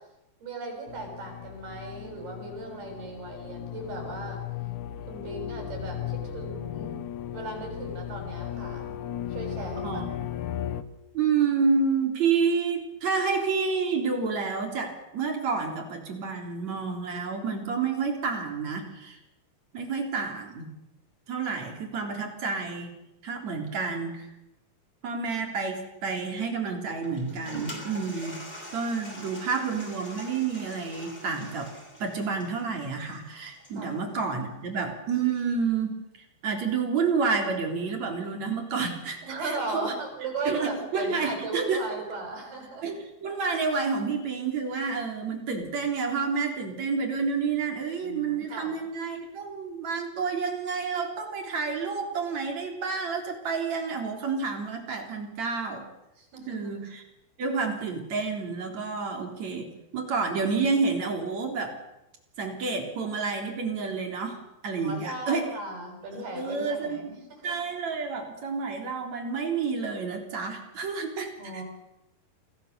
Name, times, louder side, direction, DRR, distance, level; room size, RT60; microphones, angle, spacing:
voice 1, 0.4-4.4 5.1-7.0 7.3-9.0 9.3-10.0 33.8-34.0 39.2-42.9 48.0-48.8 56.2-56.8 64.8-67.6 71.4-71.6, right 3 dB, 85° right, 2 dB, 8.8 m, -37 dB
sound 1, 0.9-10.8, left 11 dB, 65° left, 2.1 m, -36 dB
voice 2, 11.1-19.2 19.7-20.7 21.3-22.9 23.2-24.3 25.0-28.4 28.7-31.7 32.0-36.0 36.4-39.9 40.5-41.8 42.8-55.9 56.5-57.0 57.4-61.7 62.4-65.5 66.1-67.1 67.4-71.3, right 5 dB, 45° right, 3 dB, 4.7 m, -29 dB
Toilet flush, 27.0-33.9, equal, 10° left, 5.1 m, -43 dB
28.0 x 21.0 x 6.8 m, 0.92 s
omnidirectional pair, 4.3 m